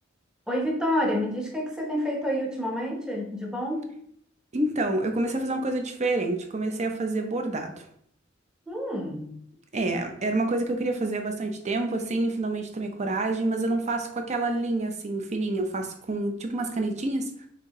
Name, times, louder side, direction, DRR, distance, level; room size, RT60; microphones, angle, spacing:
voice 1, 0.5-3.9 8.7-9.3, equal, 5° right, -1 dB, 0.9 m, -28 dB
voice 2, 4.5-7.9 9.7-17.5, right 2 dB, 35° right, 5 dB, 0.7 m, -28 dB
6.1 x 2.7 x 3.1 m, 0.69 s
head